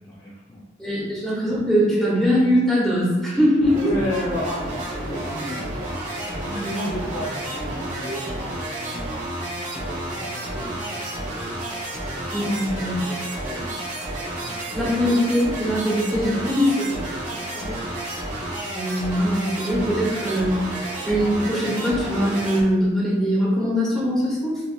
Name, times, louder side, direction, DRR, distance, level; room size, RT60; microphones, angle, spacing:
voice 1, 0.0-0.6 3.8-5.8 6.3-9.3 9.7-11.3 11.9-12.0 12.5-13.8 14.4-14.6 17.5-17.8, equal, 20° left, -7 dB, 0.6 m, -33 dB
voice 2, 0.8-3.8 12.3-13.0 14.7-17.0 18.7-20.7 21.0-24.6, equal, ahead, -7 dB, 1.3 m, -21 dB
sound 1, 3.6-22.6, right 1 dB, 40° right, 1.1 m, -31 dB
5.5 x 2.9 x 2.3 m, 1.1 s
head